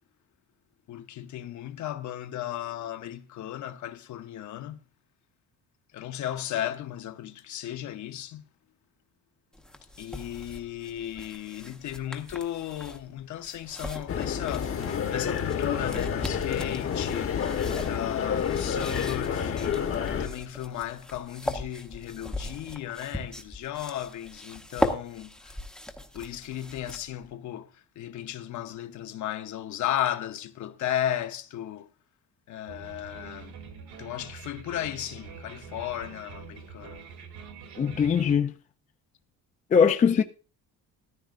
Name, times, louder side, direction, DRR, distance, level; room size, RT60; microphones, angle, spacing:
voice 1, 0.9-4.8 5.9-8.5 10.0-17.3 17.8-19.8 20.1-25.6 26.1-31.9 32.5-33.5 34.0-37.1, left 11 dB, 55° left, 0.9 m, -35 dB
sound 1, 9.5-27.3, left 1 dB, ahead, 0.9 m, -38 dB
sound 2, 14.1-20.3, left 7 dB, 40° left, 1.2 m, -29 dB
sound 3, 32.7-38.4, right 6 dB, 80° right, 2.9 m, -45 dB
voice 2, 37.8-38.5 39.7-40.2, left 6 dB, 20° left, 0.4 m, -21 dB
14.0 x 13.0 x 2.5 m
cardioid pair, 165°, 36 cm